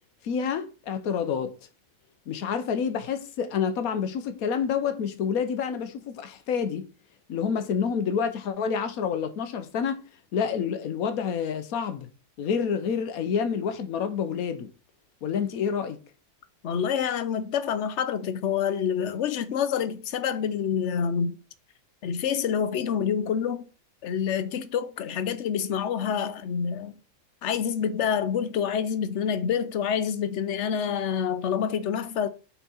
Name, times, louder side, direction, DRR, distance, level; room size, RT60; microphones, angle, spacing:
voice 1, 0.2-1.5 2.3-6.9 7.3-10.0 10.3-12.1 12.4-14.7 15.2-16.0, left 7 dB, 90° left, 1.2 m, -28 dB
voice 2, 16.6-21.4 22.0-23.7 24.0-27.0 27.4-32.3, left 7 dB, 60° left, 0.9 m, -27 dB
5.6 x 4.2 x 4.2 m
omnidirectional pair, 1.5 m